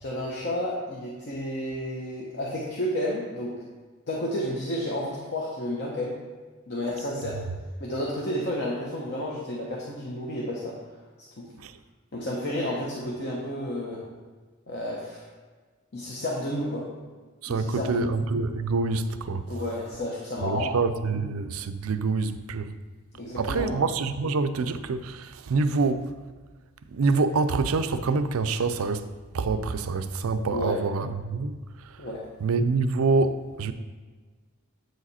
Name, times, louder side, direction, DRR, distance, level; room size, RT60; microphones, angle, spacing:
voice 1, 0.0-3.5 4.1-6.2 6.7-7.4 7.8-10.8 11.4-11.5 12.1-14.0 14.7-15.2 15.9-16.9 17.5-18.2 19.5-20.7 23.1-23.7 30.4-30.8 32.0-32.3, left 1 dB, 55° left, -3 dB, 0.9 m, -31 dB
voice 2, 17.4-19.5 20.4-22.7 23.4-26.2 26.9-29.1 29.3-31.6 31.8-32.0 32.4-33.7, right 3 dB, 90° right, 11 dB, 0.5 m, -26 dB
8.0 x 4.9 x 4.2 m, 1.4 s
head